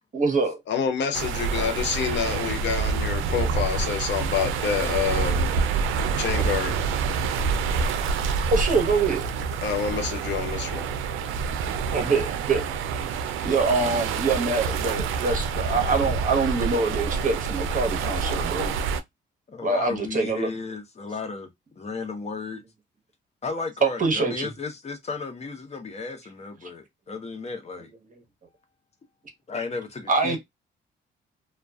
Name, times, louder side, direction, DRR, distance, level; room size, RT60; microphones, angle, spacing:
voice 1, 0.1-0.6 8.5-9.2 11.9-12.6 13.4-18.8 19.6-20.5 23.8-24.5 30.1-30.4, right 4 dB, 40° right, 0.9 m, -24 dB
voice 2, 0.7-5.5 6.2-6.7 9.6-10.9, left 7 dB, 65° left, 0.6 m, -27 dB
sound 1, 1.1-19.0, right 5 dB, 85° right, 0.4 m, -27 dB
voice 3, 19.5-21.5 21.8-22.6 23.4-27.9 29.5-30.4, left 4 dB, 35° left, 0.8 m, -34 dB
2.4 x 2.3 x 2.2 m
cardioid pair, 90°, 20 cm